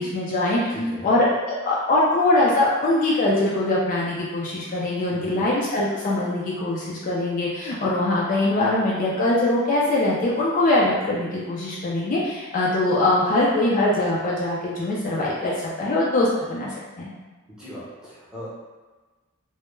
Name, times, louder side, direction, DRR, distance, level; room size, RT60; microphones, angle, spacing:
voice 1, 0.0-17.1, left 2 dB, 40° left, -5 dB, 0.3 m, -22 dB
voice 2, 0.7-1.1 5.1-5.5 17.6-18.5, equal, 5° right, -9 dB, 0.7 m, -38 dB
2.1 x 2.1 x 3.0 m, 1.3 s
head